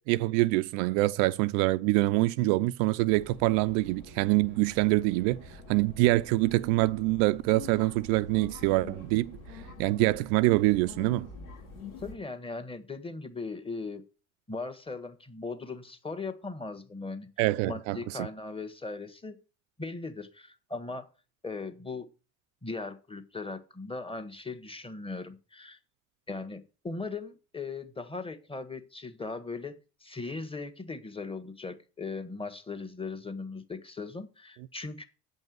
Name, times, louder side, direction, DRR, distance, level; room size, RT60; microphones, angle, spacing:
voice 1, 0.1-11.3 17.4-18.3, right 19 dB, 70° right, 0.5 m, -25 dB
sound 1, 3.1-12.1, left 3 dB, 85° left, 2.9 m, -47 dB
voice 2, 12.0-14.0 14.5-17.3 17.6-19.4 19.8-21.1 21.4-22.1 22.6-25.8 26.3-29.7 30.0-35.0, left 3 dB, 15° left, 1.6 m, -38 dB
8.6 x 5.4 x 7.9 m
hypercardioid pair, 60°, 40 cm